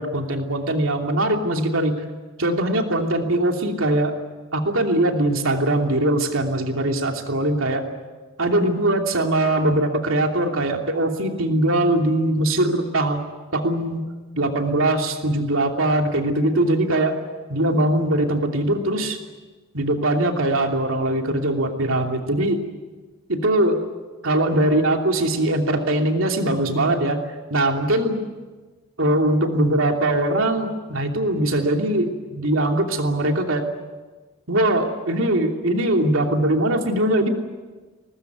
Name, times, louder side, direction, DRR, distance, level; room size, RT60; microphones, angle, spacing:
voice 1, 0.0-2.0 2.4-4.2 4.5-7.8 8.4-13.2 13.5-17.2 17.5-19.2 19.7-22.6 23.3-23.8 24.2-27.2 27.5-28.3 29.0-33.6 34.5-37.3, right 1 dB, 70° right, 3 dB, 2.9 m, -21 dB
24.0 x 19.5 x 9.4 m, 1.3 s
head